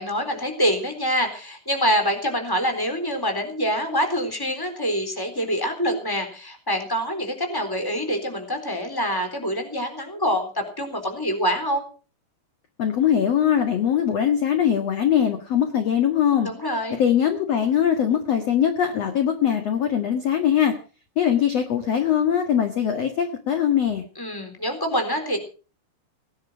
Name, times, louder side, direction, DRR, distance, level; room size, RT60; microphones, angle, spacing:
voice 1, 0.0-11.8 16.4-17.0 24.1-25.4, equal, 5° left, 6 dB, 3.3 m, -25 dB
voice 2, 12.8-16.5 17.0-20.7 21.2-24.1, left 9 dB, 55° left, 6 dB, 2.0 m, -21 dB
18.5 x 10.5 x 6.2 m, 0.38 s
omnidirectional pair, 4.8 m